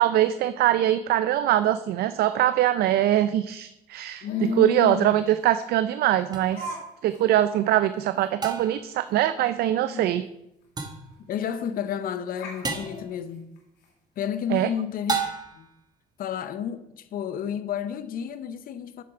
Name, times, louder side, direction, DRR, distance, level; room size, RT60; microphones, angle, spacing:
voice 1, 0.0-6.8 7.0-10.2 14.5-14.7, right 12 dB, 70° right, 0.4 m, -23 dB
Laughter, 4.2-4.7 5.5-5.6 6.5-6.8 7.1-7.2 7.7-7.8 8.1-8.3 10.2-10.3 10.6-10.7 11.6-11.9 12.3-13.9, right 1 dB, 80° left, 2.6 m, -40 dB
voice 2, 4.2-5.3 9.9-10.1 11.2-13.5 14.2-15.2 15.5-15.7 16.2-19.0, left 8 dB, 60° left, 0.7 m, -31 dB
sound 1, 6.3-6.4 8.4-8.9 10.8-11.1 12.6-13.0 15.1-15.7, right 4 dB, 25° right, 1.3 m, -30 dB
7.7 x 6.7 x 4.8 m
cardioid pair, 110°, 17 cm